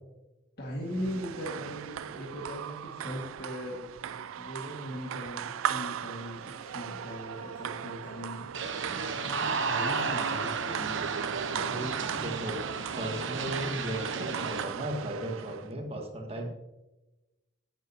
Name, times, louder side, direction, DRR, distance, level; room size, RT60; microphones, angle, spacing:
voice 1, 0.6-3.9 4.4-8.5 9.2-11.8, equal, 50° left, -4 dB, 1.9 m, -39 dB
sound 1, 0.9-15.7, right 8 dB, 90° right, 0.4 m, -37 dB
sound 2, 6.2-8.9 9.3-11.7 12.0-14.1, left 1 dB, 30° left, 4.2 m, -58 dB
sound 3, 8.5-14.6, right 4 dB, 70° right, 1.0 m, -33 dB
voice 2, 11.6-12.6 12.9-16.5, right 1 dB, 30° right, 2 dB, 1.6 m, -36 dB
16.5 x 7.5 x 2.8 m, 1.0 s
head